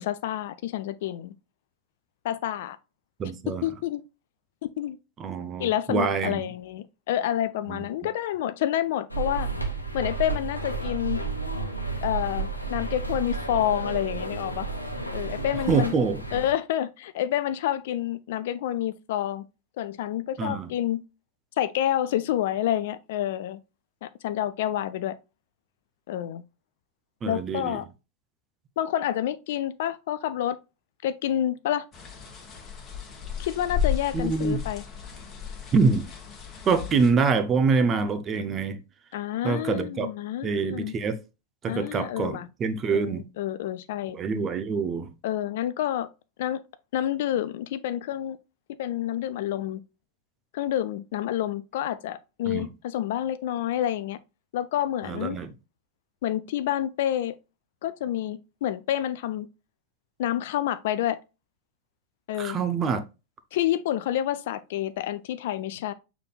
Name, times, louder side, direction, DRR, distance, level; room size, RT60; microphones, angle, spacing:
voice 1, 0.0-1.3 2.2-2.8 3.6-4.0 4.6-5.0 5.6-9.5 9.9-11.2 12.0-14.7 15.1-16.0 16.3-19.5 19.8-21.0 21.6-23.6 24.0-25.2 26.1-26.4 27.2-27.9 28.8-30.6 31.0-31.9 33.4-34.8 39.1-40.9 41.7-42.5 42.9-44.2 45.2-46.1 46.4-46.6 46.9-48.4 48.8-49.8 50.5-54.2 54.5-55.4 56.2-57.3 57.8-59.5 60.2-61.2 62.3-62.6 63.5-65.9, left 11 dB, 55° left, 0.4 m, -28 dB
voice 2, 3.2-3.7 5.2-6.5 7.7-7.9 15.7-16.2 20.4-20.7 27.2-27.8 34.1-34.7 35.7-36.1 36.7-38.8 39.4-40.1 40.4-41.2 41.6-43.3 44.1-45.1 52.5-52.7 55.0-55.5 62.4-63.0, right 5 dB, 25° right, 0.7 m, -25 dB
sound 1, 9.1-16.5, right 3 dB, 85° left, 0.9 m, -32 dB
sound 2, 31.9-37.1, left 8 dB, 25° left, 1.2 m, -34 dB
6.5 x 3.5 x 2.3 m
figure-of-eight pair, 90°, 0 cm